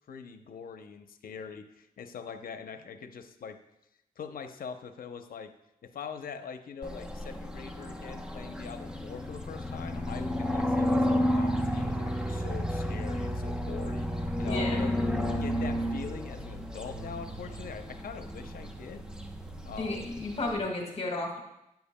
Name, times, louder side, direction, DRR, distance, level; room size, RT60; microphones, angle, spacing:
voice 1, 0.1-3.6 4.2-5.6 5.8-15.0 15.4-19.1 19.6-20.1, left 6 dB, 80° left, 8 dB, 0.7 m, -43 dB
sound 1, 6.8-20.6, equal, 5° right, 0.8 m, -32 dB
voice 2, 14.4-14.8 19.8-21.4, left 2 dB, 45° left, 0 dB, 1.6 m, -33 dB
12.5 x 9.1 x 2.2 m, 0.86 s
wide cardioid pair, 105°, 15 cm